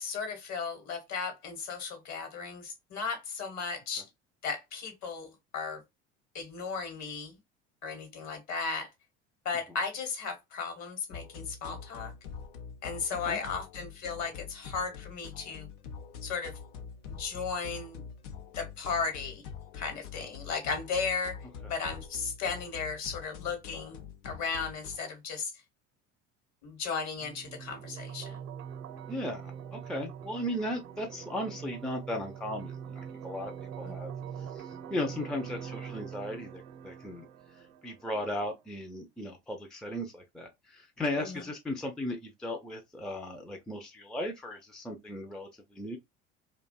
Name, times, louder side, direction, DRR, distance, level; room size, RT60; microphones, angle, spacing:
voice 1, 0.0-4.0 4.4-5.8 6.3-7.4 7.8-8.9 9.4-12.1 12.8-15.7 16.2-16.5 17.1-18.1 18.6-19.4 19.7-25.5 26.6-28.4 33.8-34.0 41.2-41.4, left 5 dB, 50° left, 1.1 m, -35 dB
sound 1, 11.1-25.0, left 6 dB, 75° left, 0.6 m, -45 dB
sound 2, 27.2-38.2, right 8 dB, 60° right, 0.7 m, -43 dB
voice 2, 29.1-34.1 34.5-37.3 37.8-46.0, left 1 dB, ahead, 0.4 m, -36 dB
2.5 x 2.2 x 2.2 m
hypercardioid pair, 70°, 36 cm